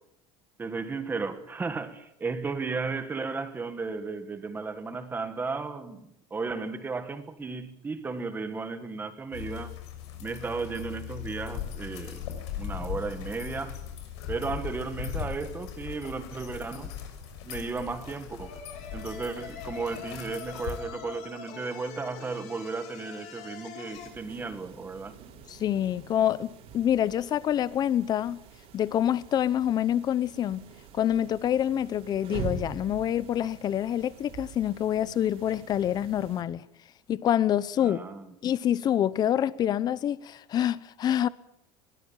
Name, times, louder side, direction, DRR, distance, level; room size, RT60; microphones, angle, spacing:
voice 1, 0.6-9.7 10.2-12.2 12.6-13.8 14.3-16.9 17.4-18.6 18.9-25.1 37.8-38.3, right 4 dB, 15° right, 1.7 m, -34 dB
sound 1, 9.3-20.8, left 9 dB, 90° left, 6.3 m, -39 dB
sound 2, 18.4-24.1, left 7 dB, 55° left, 5.5 m, -44 dB
sound 3, 23.9-36.4, right 5 dB, 45° right, 4.3 m, -44 dB
voice 2, 25.5-28.4 28.7-30.6 30.9-36.6 37.1-38.0 38.4-41.3, left 10 dB, 30° left, 0.8 m, -26 dB
22.0 x 18.0 x 7.4 m
cardioid pair, 155°, 14 cm